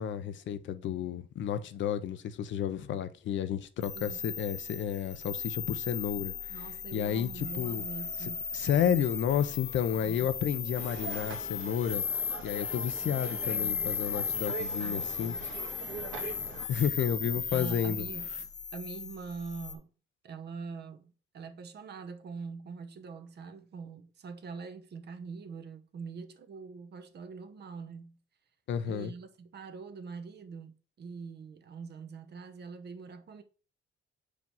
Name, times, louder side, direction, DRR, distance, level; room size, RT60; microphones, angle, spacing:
voice 1, 0.0-6.3 6.9-7.8 8.2-12.0 12.4-15.5 16.7-18.1 28.7-29.1, left 9 dB, 70° left, 0.7 m, -31 dB
sound 1, 3.8-19.7, left 6 dB, 35° left, 0.9 m, -36 dB
voice 2, 3.9-4.3 6.5-8.4 13.0-13.9 14.8-15.5 17.5-18.3 18.7-19.9 20.2-21.0 21.3-28.2 28.8-33.4, right 5 dB, 55° right, 1.0 m, -44 dB
sound 2, 10.7-16.7, right 5 dB, 85° right, 1.7 m, -43 dB
5.0 x 4.6 x 5.4 m
cardioid pair, 90°, 20 cm